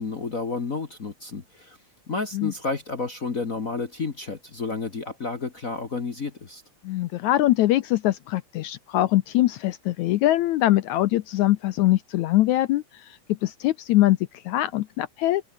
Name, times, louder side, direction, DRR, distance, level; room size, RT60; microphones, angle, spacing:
voice 1, 0.0-1.8 2.1-6.6, left 4 dB, 45° left, 1.1 m, -31 dB
voice 2, 6.8-12.8 13.4-14.2 14.5-15.4, left 15 dB, 80° left, 1.8 m, -22 dB
omnidirectional pair, 3.9 m